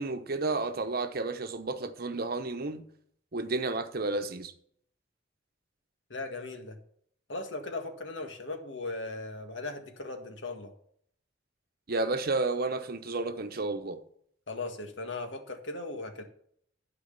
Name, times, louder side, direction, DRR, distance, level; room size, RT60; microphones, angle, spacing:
voice 1, 0.0-2.9 3.3-4.5 11.9-14.0, right 3 dB, 55° right, 0.9 m, -31 dB
voice 2, 6.1-6.8 7.3-10.7 14.5-16.2, left 2 dB, 85° left, 1.7 m, -38 dB
12.0 x 4.9 x 6.8 m
head